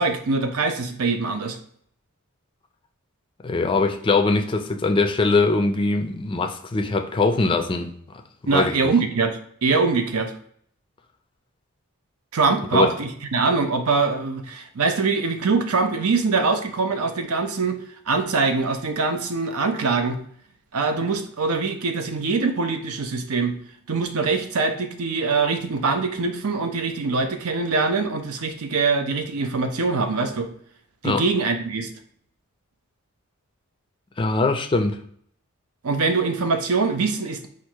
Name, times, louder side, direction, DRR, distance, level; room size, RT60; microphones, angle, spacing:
voice 1, 0.0-1.6 8.5-10.3 12.3-17.8 18.1-20.2 20.7-23.6 23.9-30.5 31.0-31.9 35.8-37.5, right 4 dB, 85° right, 7 dB, 0.6 m, -23 dB
voice 2, 3.4-7.9 8.5-8.7 12.7-12.9 31.0-31.2 34.2-35.0, left 3 dB, 25° left, 6 dB, 0.4 m, -21 dB
4.4 x 2.4 x 4.6 m, 0.62 s
head